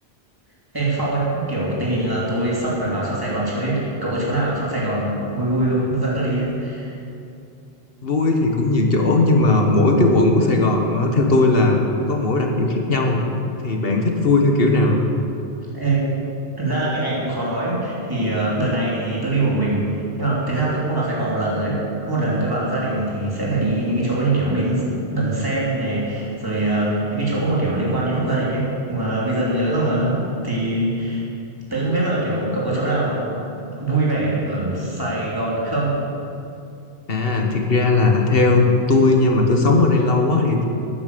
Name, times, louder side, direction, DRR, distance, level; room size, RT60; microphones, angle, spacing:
voice 1, 0.7-7.0 15.7-16.1 16.6-31.2 31.7-33.4 33.7-36.0, right 2 dB, 20° right, -6 dB, 3.1 m, -23 dB
voice 2, 8.0-11.8 12.1-13.2 13.6-15.0 37.1-40.6, left 2 dB, 60° left, 2 dB, 1.6 m, -17 dB
11.5 x 9.9 x 6.7 m, 2.6 s
omnidirectional pair, 1.1 m